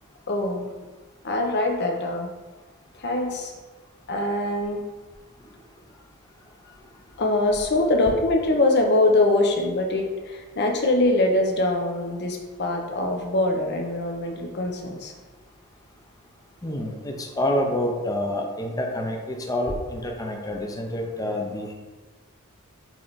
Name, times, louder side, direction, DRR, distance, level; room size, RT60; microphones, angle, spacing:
voice 1, 0.3-0.7 1.2-2.3 2.9-3.5 4.1-4.8 7.2-15.1, left 2 dB, 50° left, 2 dB, 0.8 m, -23 dB
voice 2, 16.6-21.7, left 1 dB, 15° left, 1 dB, 0.7 m, -27 dB
7.5 x 3.3 x 4.0 m, 1.3 s
head